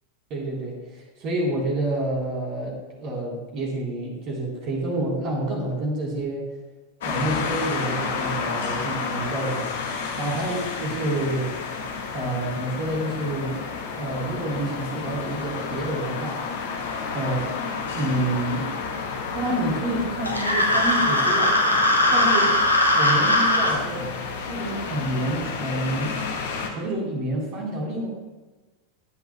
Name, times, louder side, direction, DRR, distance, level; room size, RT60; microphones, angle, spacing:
voice 1, 0.3-6.5 7.0-9.7 10.2-11.5 12.1-13.6 14.0-16.5 17.1-17.4 17.9-18.7 19.3-21.5 22.1-22.6 22.9-24.2 24.5-26.2 26.7-28.1, right 1 dB, 40° right, -1 dB, 3.6 m, -28 dB
sound 1, 7.0-26.7, left 5 dB, 55° left, 1.3 m, -31 dB
sound 2, 20.2-23.8, left 1 dB, 85° left, 1.3 m, -20 dB
19.0 x 8.2 x 2.2 m, 1.2 s
figure-of-eight pair, 90°, 0 cm